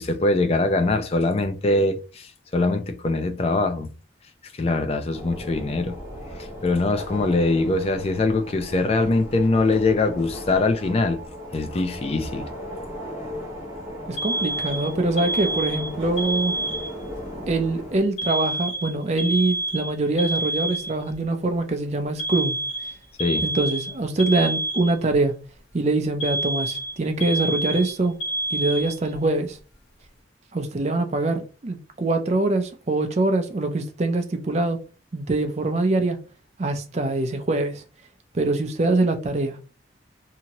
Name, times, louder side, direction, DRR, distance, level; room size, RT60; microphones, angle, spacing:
voice 1, 0.0-3.9 4.6-6.0 6.6-11.2 11.5-12.5 23.2-23.4, left 2 dB, 35° left, 0.4 m, -22 dB
sound 1, 5.1-18.0, equal, 15° right, 1.1 m, -36 dB
voice 2, 14.1-16.5 17.5-22.6 23.4-25.3 25.7-28.2 28.5-29.6 30.5-34.8 35.1-36.2 36.6-37.8 38.3-39.6, right 2 dB, 35° right, 0.5 m, -24 dB
Alarm, 14.2-17.1 18.2-21.1 22.2-25.2 26.2-29.2, right 2 dB, 60° left, 1.1 m, -28 dB
2.9 x 2.6 x 2.8 m
head